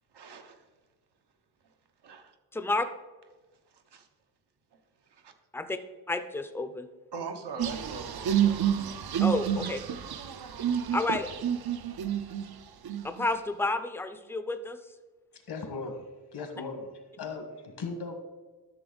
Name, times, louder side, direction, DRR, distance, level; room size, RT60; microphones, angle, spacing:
voice 1, 0.1-0.7 2.0-2.3 3.7-4.1 4.7-5.3 7.1-8.8, right 5 dB, 90° right, 5 dB, 1.0 m, -42 dB
voice 2, 2.5-2.9 5.5-5.8 6.1-6.9 9.2-9.8 10.9-11.3 13.0-14.8, left 2 dB, 5° left, 10 dB, 0.4 m, -30 dB
sound 1, 7.6-12.4 12.8-13.3, right 9 dB, 70° right, 0.6 m, -29 dB
voice 3, 15.3-18.1, left 4 dB, 75° left, 5 dB, 1.6 m, -38 dB
11.0 x 6.8 x 3.9 m, 1.3 s
wide cardioid pair, 145°, 39 cm